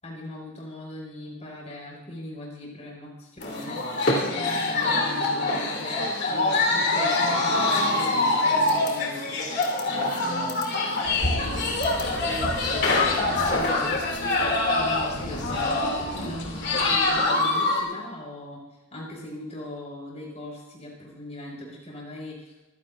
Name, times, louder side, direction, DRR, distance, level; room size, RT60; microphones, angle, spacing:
voice 1, 0.0-4.0 4.3-9.4 9.8-12.0 12.7-13.9 14.4-22.5, left 1 dB, 30° left, -3 dB, 6.5 m, -40 dB
sound 1, 3.4-17.8, left 2 dB, 50° left, 3.1 m, -25 dB
sound 2, 11.0-17.2, left 1 dB, 65° left, 5.2 m, -35 dB
25.0 x 16.0 x 2.8 m, 1.1 s
head